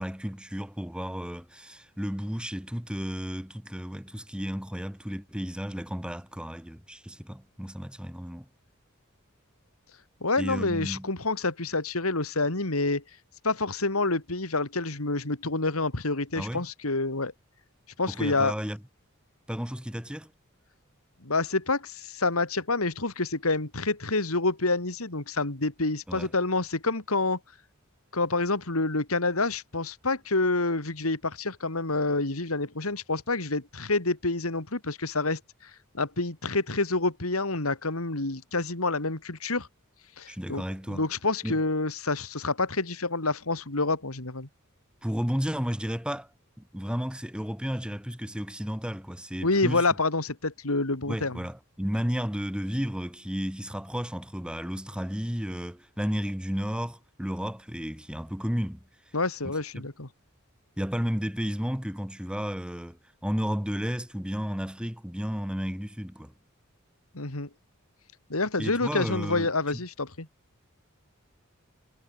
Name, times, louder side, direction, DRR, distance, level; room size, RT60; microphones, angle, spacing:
voice 1, 0.0-8.5 10.4-11.1 16.3-16.6 18.1-18.8 19.5-20.3 26.1-26.3 40.3-41.1 41.4-41.6 45.0-46.3 46.6-49.8 51.0-58.8 60.8-66.3 68.6-69.8, equal, 5° right, 1.7 m, -33 dB
voice 2, 10.2-13.0 13.4-17.3 18.0-18.5 21.2-27.4 28.1-39.7 40.2-44.5 49.4-51.4 59.1-60.1 67.1-67.5 68.3-70.3, left 3 dB, 85° left, 3.0 m, -28 dB
head